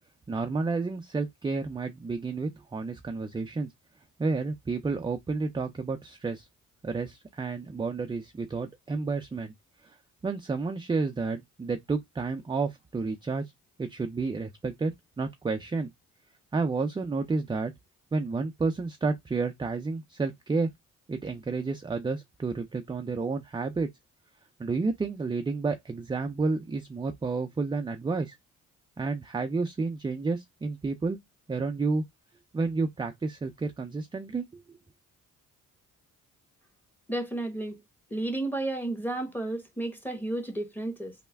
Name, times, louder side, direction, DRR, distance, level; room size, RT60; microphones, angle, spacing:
voice 1, 0.3-3.7 4.2-6.5 6.8-9.5 9.8-10.0 10.2-13.4 13.8-14.9 15.2-15.9 16.5-17.7 18.1-20.7 21.1-23.9 24.6-28.3 29.0-31.2 31.5-32.0 32.5-34.8, right 4 dB, 15° right, 0.4 m, -30 dB
voice 2, 37.1-37.8 38.1-41.1, right 2 dB, 5° left, 1.0 m, -32 dB
3.2 x 2.1 x 3.3 m
cardioid pair, 95°, 32 cm